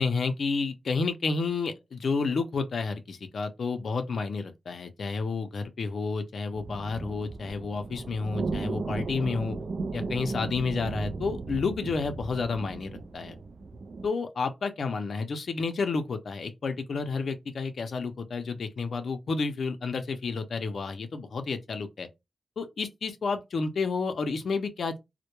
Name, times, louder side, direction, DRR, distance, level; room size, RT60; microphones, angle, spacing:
voice 1, 0.0-9.6 9.9-13.4 14.0-22.1 22.6-25.0, left 4 dB, 65° left, 0.5 m, -30 dB
sound 1, 6.5-14.1, right 3 dB, 65° right, 0.3 m, -36 dB
2.1 x 2.1 x 2.9 m
wide cardioid pair, 95°, 0 cm